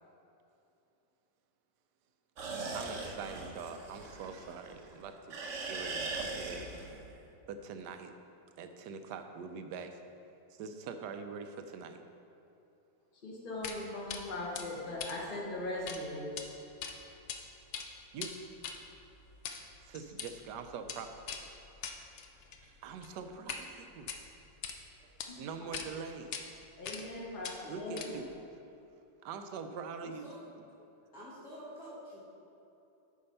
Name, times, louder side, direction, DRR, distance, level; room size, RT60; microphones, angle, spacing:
sound 1, 2.4-4.9 5.3-7.1, right 3 dB, 55° right, 1.0 m, -40 dB
voice 1, 2.7-5.4 5.7-6.7 7.5-8.1 8.6-10.0 10.5-12.0 18.1-18.4 19.9-21.1 22.6-24.1 25.4-26.3 27.7-28.3 29.2-30.3, right 5 dB, 75° right, 7 dB, 1.1 m, -43 dB
voice 2, 13.2-16.3 26.8-28.2, left 1 dB, 30° left, -3 dB, 1.3 m, -39 dB
sound 2, 13.6-13.8 14.1-14.2 14.5-16.0 16.3-16.4 16.8-17.4 17.6-23.6 24.0-24.8 25.2-25.3 25.7-25.9 26.3-26.4 26.8-27.1 27.4-28.4, left 6 dB, 80° left, 0.6 m, -42 dB
voice 3, 30.0-30.4 31.0-32.2, equal, 55° left, -10 dB, 1.8 m, -48 dB
8.6 x 4.7 x 5.4 m, 2.9 s
omnidirectional pair, 1.9 m